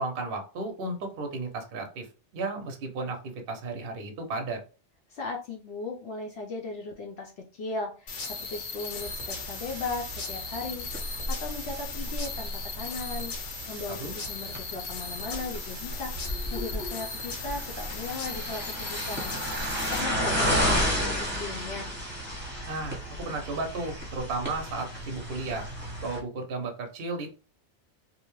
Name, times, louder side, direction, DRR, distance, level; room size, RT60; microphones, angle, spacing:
voice 1, 0.0-2.1 2.3-4.6 13.9-14.1 22.7-25.7 26.0-27.3, right 3 dB, 55° right, 3 dB, 0.8 m, -34 dB
voice 2, 5.1-13.3 13.7-19.4 19.9-21.9, left 3 dB, 70° left, 1 dB, 0.8 m, -37 dB
sound 1, 8.1-20.0, left 4 dB, 85° left, 1.1 m, -38 dB
sound 2, 9.0-26.2, equal, 10° right, 0.9 m, -33 dB
2.7 x 2.1 x 3.0 m, 0.35 s
omnidirectional pair, 1.2 m